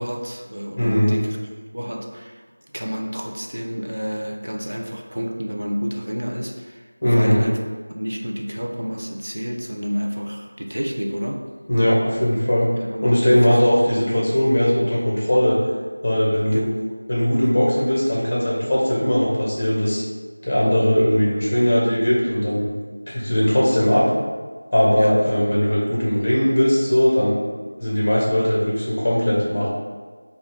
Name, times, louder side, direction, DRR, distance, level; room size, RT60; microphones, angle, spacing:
voice 1, 0.0-1.4 1.7-2.4 2.7-7.6 8.0-11.4 12.7-13.8 16.5-16.7 24.9-25.2, equal, 80° right, 1 dB, 0.5 m, -29 dB
voice 2, 0.8-1.1 7.0-7.4 11.7-12.7 13.0-15.6 16.0-16.6 17.1-20.0 20.4-22.6 23.1-24.1 24.7-27.4 27.8-29.7, equal, 15° left, -6 dB, 0.8 m, -19 dB
5.2 x 2.4 x 3.4 m, 1.5 s
figure-of-eight pair, 180°, 0 cm